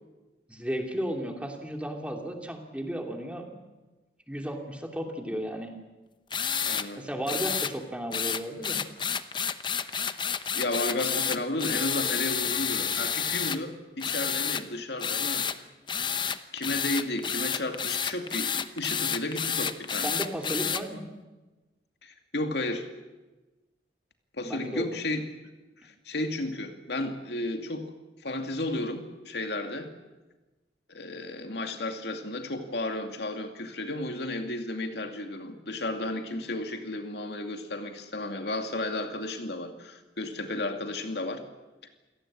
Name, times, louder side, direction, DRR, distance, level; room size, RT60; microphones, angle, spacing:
voice 1, 0.5-3.6 4.3-5.7 7.0-8.8 20.0-21.1 24.4-24.9, equal, 5° right, 2 dB, 2.7 m, -34 dB
sound 1, 6.3-6.9 7.3-7.7 8.1-13.6 14.0-14.6 15.0-15.6 15.9-20.8, left 7 dB, 25° left, 0.9 m, -30 dB
voice 2, 6.6-7.0 9.8-10.1 10.5-15.5 16.5-20.2 22.0-22.9 24.4-25.3 25.8-27.9 28.2-29.9 30.9-41.4, left 2 dB, 65° left, 5 dB, 2.4 m, -33 dB
28.0 x 18.0 x 8.7 m, 1.2 s
head